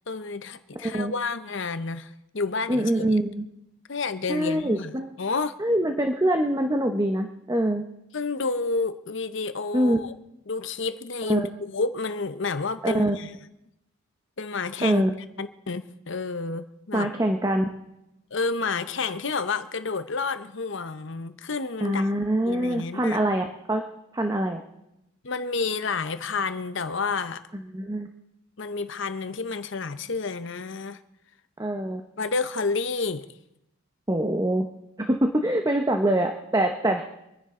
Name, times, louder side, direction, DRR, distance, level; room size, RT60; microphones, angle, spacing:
voice 1, 0.1-3.0 3.9-5.5 8.1-10.1 10.5-13.3 14.4-15.1 15.4-17.1 18.3-22.1 22.5-23.2 25.2-27.4 28.6-31.0 32.2-33.3, left 4 dB, 55° left, 12 dB, 0.8 m, -30 dB
voice 2, 0.8-1.1 2.7-3.4 4.3-5.1 5.6-7.8 9.7-10.0 11.3-11.5 12.8-13.2 14.8-15.1 16.9-17.7 21.8-23.8 24.1-24.6 27.5-28.1 31.6-32.0 34.1-34.7 35.0-37.0, right 1 dB, 15° right, 5 dB, 0.8 m, -24 dB
25.5 x 10.5 x 3.7 m, 0.85 s
head